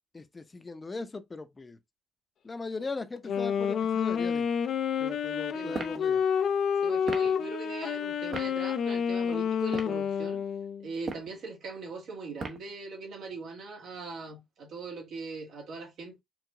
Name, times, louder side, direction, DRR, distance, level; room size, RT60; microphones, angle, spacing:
voice 1, 0.1-1.8 2.4-4.5 5.0-6.2, left 3 dB, 25° left, 0.7 m, -39 dB
Wind instrument woodwind instrument, 3.2-10.9, left 7 dB, 65° left, 0.5 m, -29 dB
voice 2, 5.5-5.8 6.8-10.4 10.8-16.2, right 3 dB, 75° right, 1.7 m, -41 dB
sound 1, 5.7-6.0 7.0-7.3 8.3-8.5 9.6-10.0 10.9-11.3 12.4-12.7, right 4 dB, 55° right, 0.9 m, -37 dB
4.7 x 2.4 x 3.7 m
cardioid pair, 90°, 0 cm